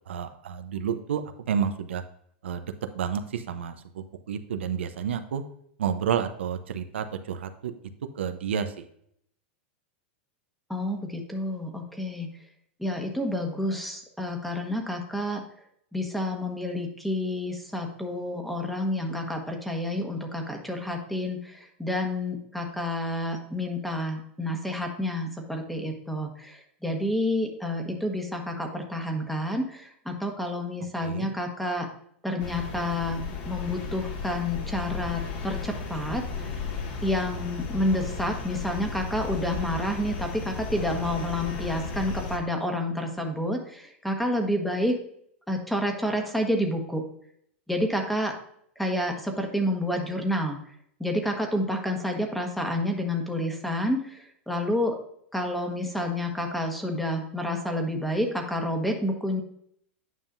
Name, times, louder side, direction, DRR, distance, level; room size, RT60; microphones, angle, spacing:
voice 1, 0.1-1.2 1.5-2.0 2.4-2.6 2.9-5.4 5.8-7.7 8.2-8.8 31.0-31.3, right 8 dB, 85° right, 8 dB, 0.7 m, -30 dB
voice 2, 10.7-12.3 12.8-15.4 15.9-31.9 32.2-36.6 37.0-45.0 45.5-47.0 47.7-48.3 48.8-50.6 51.0-54.9 55.3-59.4, left 1 dB, ahead, 3 dB, 1.2 m, -29 dB
sound 1, 32.4-42.4, left 4 dB, 55° left, 1.8 m, -34 dB
9.4 x 5.5 x 2.6 m, 0.68 s
hypercardioid pair, 120°, 6 cm